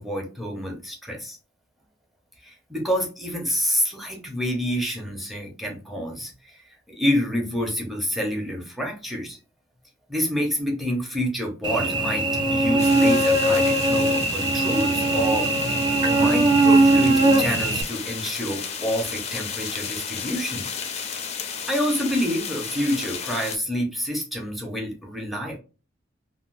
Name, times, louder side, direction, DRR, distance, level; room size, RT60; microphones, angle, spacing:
voice 1, 0.0-1.4 2.4-6.6 6.9-9.4 10.1-15.8 16.1-20.7 21.7-25.6, equal, ahead, 1 dB, 0.8 m, -28 dB
Cricket / Buzz, 11.6-17.8, right 2 dB, 25° right, 0.4 m, -20 dB
sound 1, 12.8-23.6, left 6 dB, 35° left, 0.4 m, -33 dB
3.4 x 2.1 x 2.5 m, 0.33 s
head